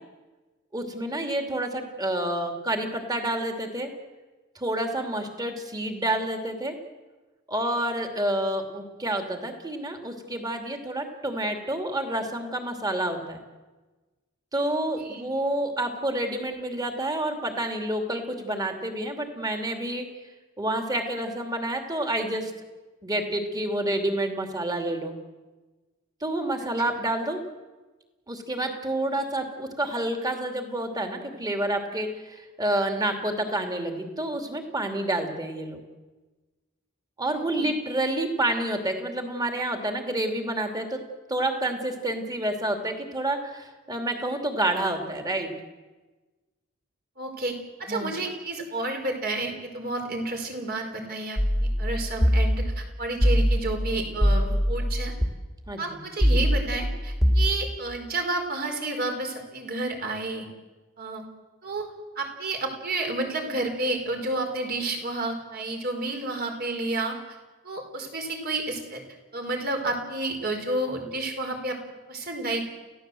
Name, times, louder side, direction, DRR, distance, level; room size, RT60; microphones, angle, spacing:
voice 1, 0.7-3.9 4.5-6.8 7.5-13.4 14.5-20.1 20.6-22.5 23.0-25.1 26.2-27.4 28.3-35.8 37.2-41.0 41.3-45.5 47.9-48.1 55.7-56.0, right 1 dB, 20° right, 4 dB, 2.8 m, -29 dB
voice 2, 15.0-15.4 26.6-26.7 37.4-37.7 47.2-47.5 47.8-55.1 55.8-60.5 61.0-61.2 61.6-61.9 62.2-67.2 67.6-69.0 69.3-71.8 72.1-72.6, right 2 dB, 50° right, 3 dB, 4.5 m, -30 dB
sound 1, 51.4-55.3 56.2-57.5, equal, ahead, 2.0 m, -23 dB
29.0 x 16.5 x 7.8 m, 1.2 s
head